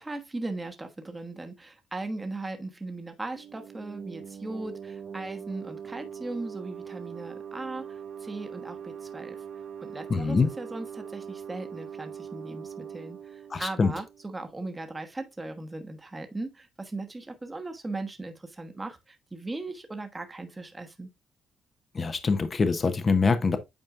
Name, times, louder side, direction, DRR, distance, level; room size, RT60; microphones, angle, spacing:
voice 1, 0.0-9.4 9.8-21.1, right 2 dB, 20° right, 1.2 m, -38 dB
sound 1, 3.3-14.8, right 7 dB, 45° right, 1.2 m, -42 dB
voice 2, 10.1-10.5 13.5-13.9 21.9-23.6, left 4 dB, 35° left, 0.8 m, -24 dB
8.9 x 4.3 x 2.5 m
cardioid pair, 90°, 0 cm